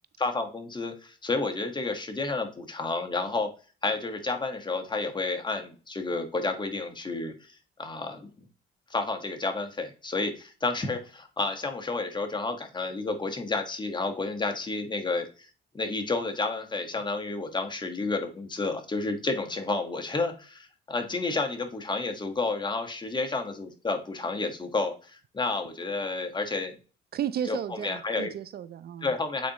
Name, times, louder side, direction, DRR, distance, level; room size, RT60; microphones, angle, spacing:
voice 1, 0.2-3.5 3.8-8.3 8.9-15.3 15.7-26.7 27.5-28.3 29.0-29.5, left 3 dB, 20° left, 1.4 m, -31 dB
voice 2, 27.1-29.1, right 9 dB, 50° right, 0.4 m, -33 dB
8.5 x 4.2 x 3.0 m
cardioid pair, 90°, 20 cm